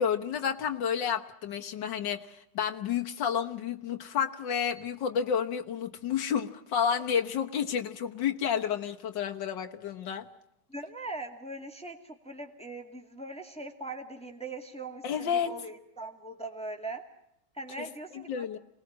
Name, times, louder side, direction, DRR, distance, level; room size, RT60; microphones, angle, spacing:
voice 1, 0.0-10.3 15.0-15.5 17.8-17.9 18.1-18.6, left 8 dB, 85° left, 4 dB, 1.9 m, -30 dB
voice 2, 10.7-17.0 17.5-18.5, right 2 dB, 5° left, 4 dB, 2.1 m, -41 dB
27.0 x 19.5 x 7.5 m, 0.78 s
omnidirectional pair, 1.9 m